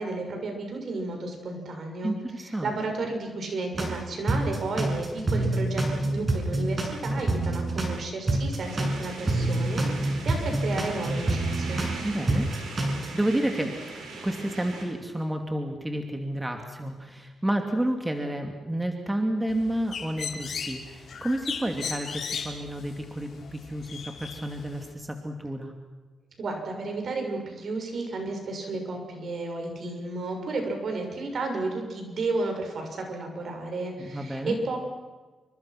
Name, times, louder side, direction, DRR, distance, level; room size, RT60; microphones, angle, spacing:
voice 1, 0.0-11.8 26.4-34.8, right 3 dB, 60° right, 3 dB, 6.9 m, -32 dB
voice 2, 2.0-2.7 12.0-12.5 12.9-25.7 34.0-34.6, right 1 dB, 10° right, 4 dB, 2.8 m, -30 dB
sound 1, 3.7-4.0 4.3-8.0 8.3-12.0 12.3-13.2, right 2 dB, 30° right, 7.6 m, -27 dB
sound 2, 8.6-14.8, right 2 dB, 85° right, 7.6 m, -39 dB
Bird, 19.5-24.9, left 6 dB, 65° left, 4.1 m, -37 dB
28.0 x 24.5 x 6.2 m, 1.3 s
cardioid pair, 80°, 0 cm